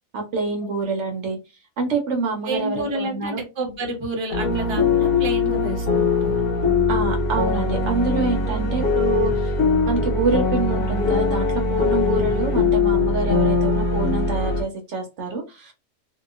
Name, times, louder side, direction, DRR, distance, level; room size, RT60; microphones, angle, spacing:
voice 1, 0.1-1.4 1.8-3.4 6.9-9.5 9.9-15.7, right 4 dB, 65° right, 2 dB, 0.9 m, -26 dB
voice 2, 2.4-6.4 8.6-8.9, right 1 dB, 25° right, 1 dB, 0.7 m, -30 dB
sound 1, 4.3-14.6, left 4 dB, 80° left, 1.3 m, -21 dB
2.8 x 2.4 x 2.3 m, 0.27 s
omnidirectional pair, 1.4 m